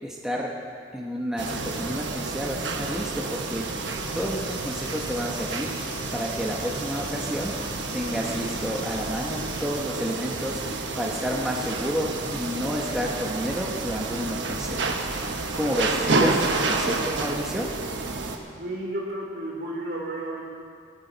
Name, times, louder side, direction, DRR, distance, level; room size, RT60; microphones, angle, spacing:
voice 1, 0.0-0.6 0.9-3.8 4.1-5.7 6.1-7.6 7.9-14.8 15.6-17.7, equal, 5° right, -3 dB, 0.9 m, -30 dB
sound 1, 1.4-18.4, right 3 dB, 90° right, 1.2 m, -30 dB
sound 2, 3.9-9.7, equal, 15° left, 4.2 m, -42 dB
voice 2, 18.4-20.4, right 1 dB, 60° right, -3 dB, 3.2 m, -32 dB
17.5 x 13.0 x 4.0 m, 2.2 s
head